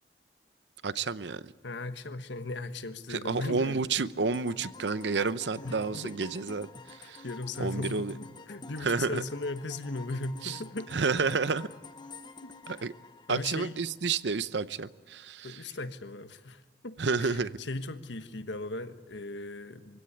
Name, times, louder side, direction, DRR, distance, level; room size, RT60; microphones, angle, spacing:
voice 1, 0.8-1.5 3.1-7.2 7.6-8.2 8.8-9.2 10.4-10.6 10.9-11.7 12.7-12.9 13.3-15.6 17.0-17.6, right 4 dB, 80° right, 0.7 m, -30 dB
voice 2, 1.6-3.8 5.6-6.3 7.0-11.0 12.4-12.5 13.3-13.8 15.4-20.0, left 2 dB, 90° left, 1.3 m, -38 dB
sound 1, 4.3-14.0, left 3 dB, 25° left, 1.0 m, -48 dB
23.5 x 16.5 x 10.0 m
head